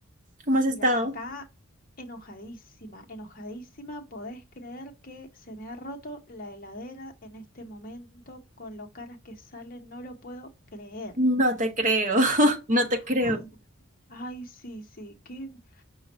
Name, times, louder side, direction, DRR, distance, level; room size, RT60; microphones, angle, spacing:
voice 1, 0.5-1.1 11.2-13.4, equal, 35° right, 0.9 m, -23 dB
voice 2, 1.1-1.4 2.0-11.1 13.2-13.5 14.1-15.8, equal, 45° left, 0.9 m, -41 dB
5.2 x 2.4 x 4.2 m
head